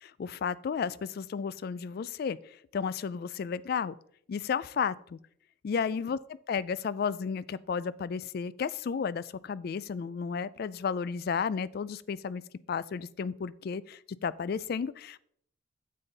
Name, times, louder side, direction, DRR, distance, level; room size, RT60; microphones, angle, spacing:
voice 1, 0.0-4.0 4.3-5.2 5.6-6.2 6.5-12.4 12.7-15.2, left 6 dB, 50° left, 19 dB, 0.3 m, -33 dB
8.9 x 7.6 x 3.9 m, 0.67 s
head